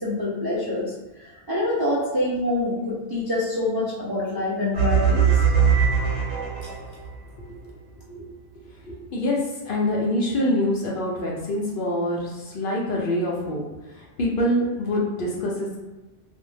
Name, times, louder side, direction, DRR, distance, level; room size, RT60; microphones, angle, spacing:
voice 1, 0.0-0.9 1.2-5.4, left 1 dB, 40° right, -8 dB, 0.3 m, -26 dB
sound 1, 4.7-7.1, right 6 dB, 90° right, 1.1 m, -20 dB
voice 2, 8.9-9.4 9.6-13.6 13.9-15.8, left 1 dB, 60° left, -3 dB, 0.6 m, -25 dB
2.4 x 2.1 x 3.2 m, 1.2 s
omnidirectional pair, 1.2 m